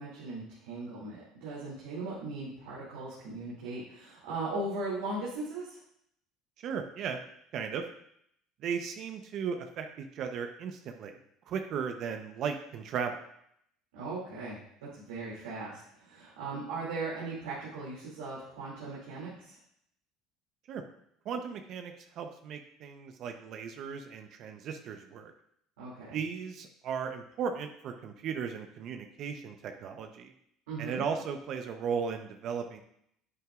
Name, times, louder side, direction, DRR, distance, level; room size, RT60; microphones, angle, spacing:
voice 1, 0.0-5.8 13.9-19.6 25.8-26.2 30.7-31.0, right 3 dB, 90° right, -8 dB, 2.6 m, -38 dB
voice 2, 6.6-7.2 7.5-7.8 8.6-11.1 11.5-13.2 20.7-20.8 21.2-25.3 26.1-30.3 30.8-32.8, right 6 dB, 55° right, 6 dB, 0.8 m, -36 dB
9.8 x 7.9 x 2.4 m, 0.72 s
supercardioid pair, 85°, 0 cm